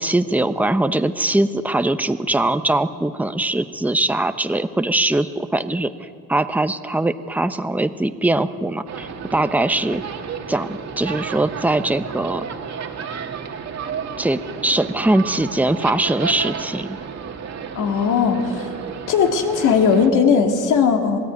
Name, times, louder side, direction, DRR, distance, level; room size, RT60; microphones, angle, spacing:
voice 1, 0.0-10.0 10.5-12.5 14.2-17.0, right 2 dB, 5° right, 10 dB, 0.9 m, -21 dB
sound 1, 8.9-20.1, right 6 dB, 60° right, 2.1 m, -32 dB
voice 2, 17.7-18.8 19.1-21.2, left 6 dB, 85° left, 3 dB, 2.6 m, -18 dB
27.0 x 18.5 x 9.5 m, 2.5 s
cardioid pair, 90°, 30 cm